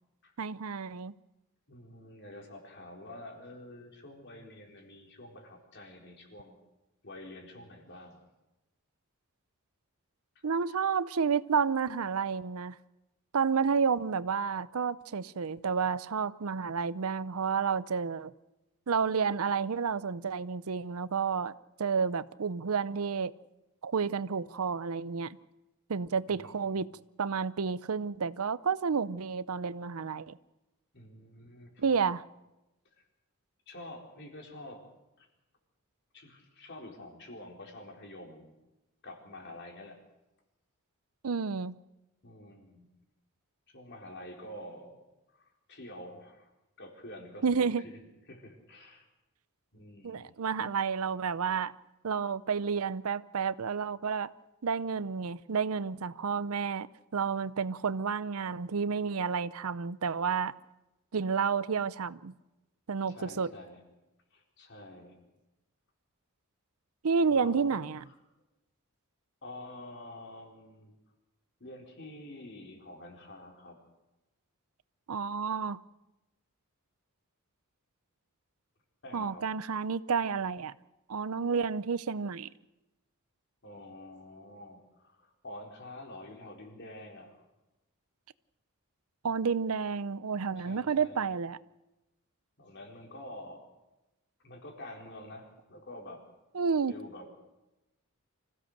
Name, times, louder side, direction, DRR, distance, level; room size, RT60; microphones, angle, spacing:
voice 1, 0.4-1.1 10.4-12.8 13.3-18.3 18.9-21.5 21.8-23.3 23.8-25.4 25.9-26.9 27.2-30.4 31.8-32.2 41.2-41.8 47.4-47.8 50.0-51.7 52.0-54.3 54.6-60.5 61.1-62.3 62.9-63.5 67.0-68.0 75.1-75.8 79.1-80.7 81.1-82.5 89.2-91.6 96.5-96.9, right 5 dB, 75° right, 0.6 m, -30 dB
voice 2, 1.7-6.5 7.0-8.2 26.3-26.7 30.9-32.0 33.7-34.8 35.2-35.3 36.1-38.5 39.0-40.0 42.2-42.9 43.7-45.0 45.3-46.5 46.8-48.0 48.3-49.0 49.7-50.4 63.1-63.8 64.3-65.2 67.3-67.8 68.0-68.1 69.4-70.9 71.6-73.8 79.0-79.4 83.6-87.3 90.6-91.2 92.6-93.6 94.4-96.2 96.9-97.3, left 1 dB, 50° left, 4.1 m, -47 dB
25.5 x 16.0 x 6.5 m
head